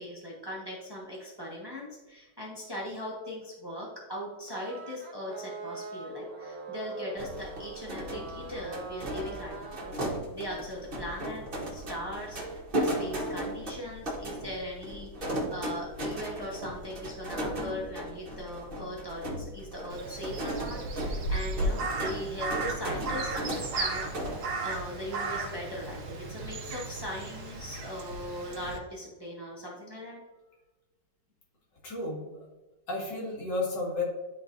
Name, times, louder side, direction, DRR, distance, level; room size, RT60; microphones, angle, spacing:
voice 1, 0.0-24.4 24.6-30.2, equal, 15° right, -4 dB, 1.1 m, -39 dB
sound 1, 4.5-9.9, right 2 dB, 60° right, 1.3 m, -42 dB
sound 2, 7.2-24.4, right 1 dB, 35° right, 1.2 m, -36 dB
Crow, 19.9-28.8, right 2 dB, 85° right, 1.5 m, -35 dB
voice 2, 31.8-32.5 32.9-34.0, left 2 dB, 85° left, -4 dB, 2.5 m, -32 dB
11.0 x 3.8 x 2.6 m, 1.2 s
omnidirectional pair, 1.9 m